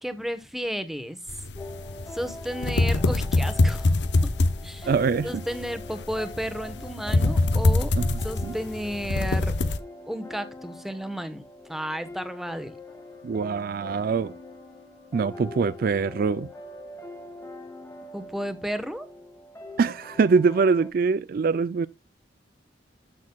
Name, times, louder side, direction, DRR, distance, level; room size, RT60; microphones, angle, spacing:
voice 1, 0.0-1.2 2.1-3.9 4.2-4.3 4.6-4.9 5.2-7.9 8.2-9.5 10.1-12.8 18.1-19.1, equal, ahead, 1.0 m, -33 dB
sound 1, 1.3-9.8, left 2 dB, 70° left, 0.7 m, -24 dB
sound 2, 1.5-20.9, left 2 dB, 15° left, 1.5 m, -43 dB
voice 2, 4.9-5.4 8.0-8.6 13.2-14.3 15.1-16.5 19.8-21.9, right 5 dB, 50° right, 0.3 m, -24 dB
14.0 x 6.2 x 2.3 m
head